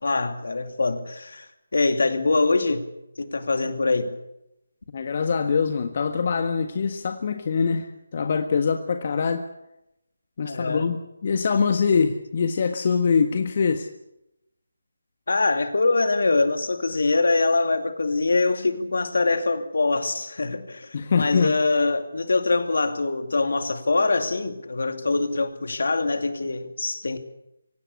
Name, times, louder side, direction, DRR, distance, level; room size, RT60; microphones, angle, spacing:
voice 1, 0.0-1.5 1.7-2.9 3.2-4.2 10.4-10.8 15.3-27.2, left 3 dB, 65° left, 2.5 m, -23 dB
voice 2, 4.9-9.5 10.4-13.9 20.9-21.5, left 5 dB, 45° left, 1.5 m, -23 dB
24.5 x 17.5 x 8.4 m
figure-of-eight pair, 155°, 0 cm